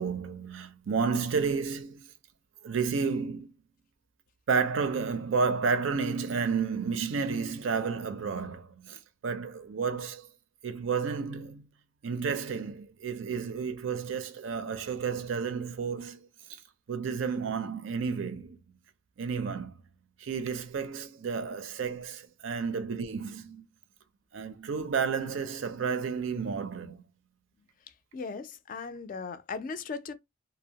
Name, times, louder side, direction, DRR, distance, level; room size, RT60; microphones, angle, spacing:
voice 1, 0.0-2.1 2.6-3.5 4.5-10.3 10.6-11.7 12.0-16.6 16.9-18.6 19.2-19.7 20.2-23.7 24.3-27.0, right 5 dB, 70° right, 0.4 m, -31 dB
voice 2, 28.1-30.1, left 4 dB, 40° left, 0.3 m, -37 dB
2.6 x 2.0 x 2.7 m
head